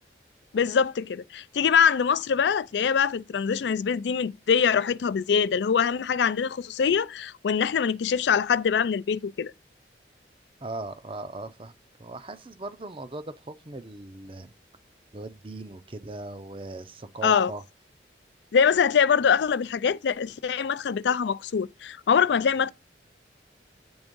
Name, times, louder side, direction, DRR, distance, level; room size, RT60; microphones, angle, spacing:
voice 1, 0.5-9.5 17.2-17.5 18.5-22.7, left 7 dB, 75° left, 0.4 m, -23 dB
voice 2, 10.6-11.7 12.0-14.5 15.1-17.6, right 2 dB, 30° right, 0.6 m, -39 dB
8.8 x 3.5 x 5.2 m
head